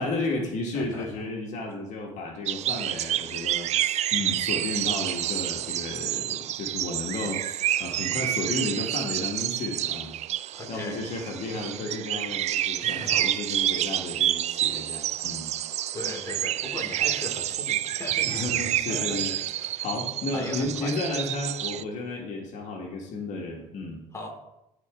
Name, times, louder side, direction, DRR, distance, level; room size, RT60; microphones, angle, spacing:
voice 1, 0.0-10.2 10.4-15.5 18.3-19.3 19.6-24.0, left 2 dB, 65° left, 0 dB, 1.6 m, -33 dB
voice 2, 0.7-1.2 3.6-3.7 10.5-11.0 11.5-11.6 12.8-13.2 15.9-19.9 20.3-20.9 24.1-24.3, left 2 dB, 20° left, 0 dB, 2.5 m, -39 dB
sound 1, 2.5-21.8, right 12 dB, 55° right, 0.4 m, -29 dB
12.5 x 4.4 x 3.6 m, 0.88 s
supercardioid pair, 80°, 13 cm